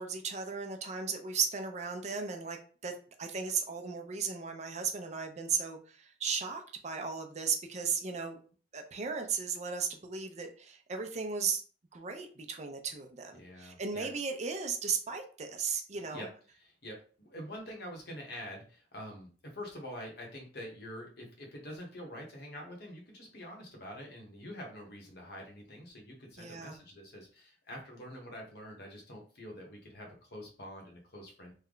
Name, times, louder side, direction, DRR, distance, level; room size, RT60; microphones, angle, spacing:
voice 1, 0.0-2.9 3.2-8.4 8.7-11.6 11.9-16.3 26.4-26.8, right 5 dB, 40° right, 5 dB, 0.5 m, -36 dB
voice 2, 13.4-14.1 15.9-16.3 16.5-31.5, equal, 65° left, 0 dB, 1.1 m, -46 dB
3.3 x 2.2 x 3.7 m, 0.40 s
head